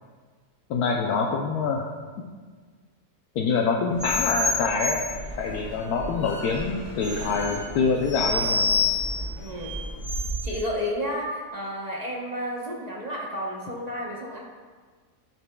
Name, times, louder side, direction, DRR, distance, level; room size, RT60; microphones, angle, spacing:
voice 1, 0.7-1.8 3.4-5.0 5.4-8.7, left 4 dB, 75° left, -1 dB, 1.1 m, -25 dB
sound 1, 4.0-10.6, left 2 dB, 30° left, 1.2 m, -28 dB
voice 2, 9.3-9.7 10.4-14.4, equal, 30° right, -3 dB, 0.8 m, -32 dB
11.0 x 6.0 x 2.2 m, 1.5 s
omnidirectional pair, 1.7 m